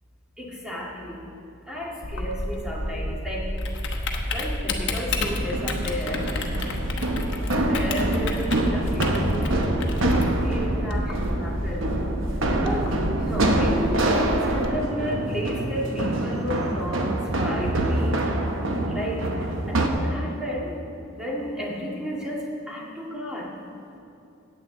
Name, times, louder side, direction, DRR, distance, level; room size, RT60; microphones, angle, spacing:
voice 1, 0.4-1.3 1.7-3.6 4.3-6.4 7.3-9.8 10.1-11.9 12.5-18.2 18.9-20.8 21.1-23.6, equal, 5° right, -5 dB, 1.9 m, -33 dB
Typing, 2.0-14.7, left 1 dB, 65° left, 1.0 m, -30 dB
sound 1, 5.2-19.9, right 1 dB, 70° right, 1.0 m, -26 dB
14.5 x 9.0 x 3.8 m, 2.7 s
head